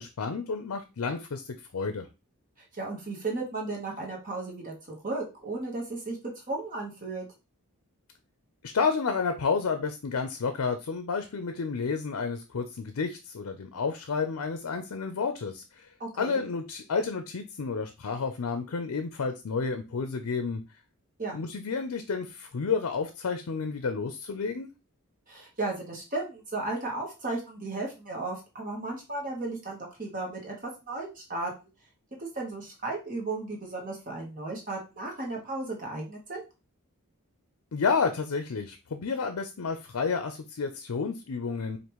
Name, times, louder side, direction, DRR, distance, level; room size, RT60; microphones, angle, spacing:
voice 1, 0.0-1.4 1.7-2.1 8.6-15.9 16.2-20.6 21.3-24.7 37.7-41.8, left 5 dB, 75° left, 7 dB, 0.5 m, -30 dB
voice 2, 2.7-6.2 6.5-7.3 16.0-16.4 21.2-21.4 25.3-30.5 30.9-31.5 32.2-36.4, right 2 dB, 35° right, 0 dB, 1.1 m, -35 dB
5.1 x 2.5 x 3.0 m, 0.28 s
head